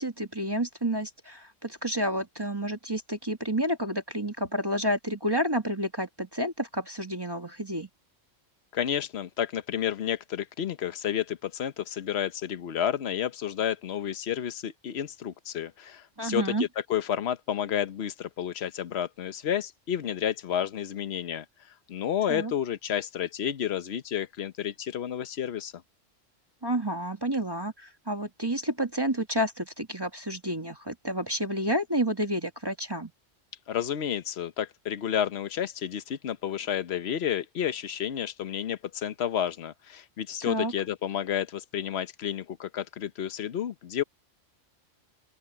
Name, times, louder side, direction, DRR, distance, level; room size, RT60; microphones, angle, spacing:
voice 1, 0.0-7.9 16.2-16.6 22.3-22.5 26.6-33.1 40.4-40.7, equal, 20° right, 1.7 m, -30 dB
voice 2, 8.7-21.4 21.9-25.8 33.7-44.0, left 9 dB, 60° left, 1.1 m, -31 dB
open air
omnidirectional pair, 1.3 m